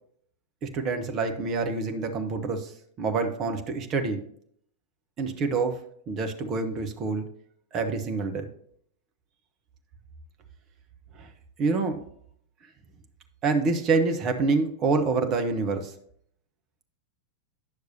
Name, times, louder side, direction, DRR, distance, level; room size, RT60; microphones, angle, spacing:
voice 1, 0.6-2.7 3.0-4.2 5.2-5.8 6.1-7.3 7.7-8.5 11.2-11.3 11.6-12.0 13.4-15.9, right 4 dB, 35° right, 6 dB, 1.1 m, -26 dB
9.9 x 6.5 x 2.8 m, 0.64 s
figure-of-eight pair, 90°, 0 cm